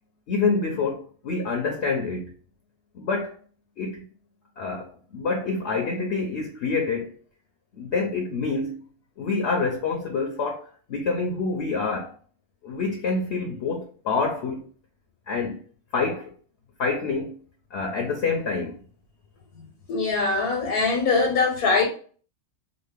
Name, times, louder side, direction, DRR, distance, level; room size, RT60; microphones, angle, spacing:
voice 1, 0.3-2.3 3.0-3.4 3.8-4.0 4.6-7.2 7.8-8.8 9.2-12.1 12.6-14.6 15.3-15.6 15.9-16.3 16.8-17.3 17.7-18.7, left 4 dB, 60° left, 0.8 m, -27 dB
voice 2, 19.9-21.9, left 4 dB, 90° left, 1.3 m, -22 dB
3.9 x 2.0 x 3.3 m
omnidirectional pair, 1.5 m